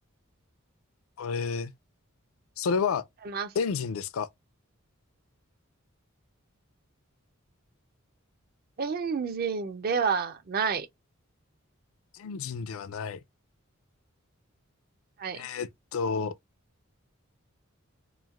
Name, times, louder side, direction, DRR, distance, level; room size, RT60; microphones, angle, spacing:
voice 1, 1.2-1.7 2.6-3.0 3.6-4.3 12.1-13.2 15.3-16.4, left 5 dB, 75° left, 0.4 m, -30 dB
voice 2, 8.8-10.9 15.2-15.5, right 6 dB, 45° right, 0.4 m, -29 dB
3.1 x 2.4 x 2.3 m
head